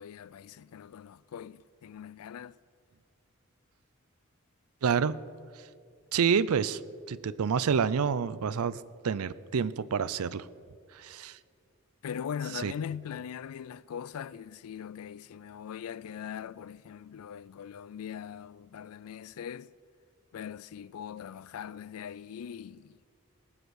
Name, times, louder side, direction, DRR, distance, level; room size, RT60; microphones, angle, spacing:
voice 1, 0.0-2.6 12.0-19.7 20.3-23.0, left 8 dB, 75° left, 0.3 m, -41 dB
voice 2, 4.8-5.2 6.1-6.8 7.1-10.5 10.9-11.4 12.6-12.7, right 6 dB, 75° right, 0.5 m, -28 dB
18.5 x 7.9 x 6.3 m
head